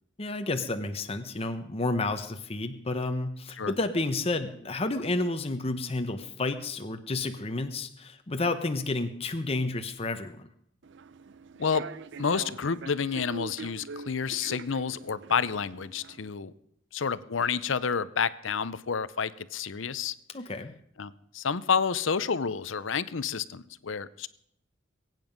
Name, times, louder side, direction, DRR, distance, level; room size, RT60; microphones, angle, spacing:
voice 1, 0.2-10.5 20.3-20.7, left 2 dB, 30° left, 7 dB, 0.9 m, -31 dB
Human voice / Subway metro underground, 10.8-16.3, right 4 dB, 60° right, 0.5 m, -44 dB
voice 2, 12.2-16.5 16.9-20.1 21.0-24.3, left 6 dB, 65° left, 17 dB, 0.7 m, -29 dB
22.0 x 9.2 x 5.2 m, 0.73 s
head